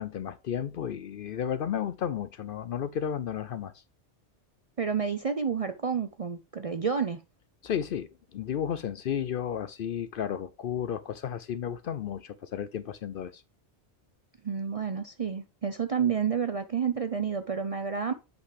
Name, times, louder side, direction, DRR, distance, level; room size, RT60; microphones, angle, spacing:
voice 1, 0.0-3.7 7.6-13.4, left 9 dB, 60° left, 0.6 m, -33 dB
voice 2, 4.8-7.2 14.4-18.1, right 6 dB, 45° right, 0.5 m, -29 dB
8.2 x 5.2 x 3.3 m
omnidirectional pair, 1.2 m